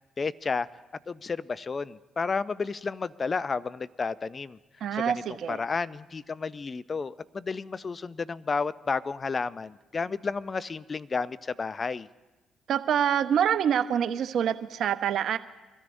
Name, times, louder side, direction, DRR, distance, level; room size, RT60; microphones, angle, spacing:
voice 1, 0.2-0.7 1.1-4.6 4.9-5.1 5.5-12.1, left 4 dB, 40° left, 18 dB, 0.4 m, -31 dB
voice 2, 4.8-5.6 12.7-15.4, right 9 dB, 65° right, 13 dB, 0.6 m, -26 dB
23.5 x 13.5 x 2.6 m, 1.2 s
hypercardioid pair, 55°, 0 cm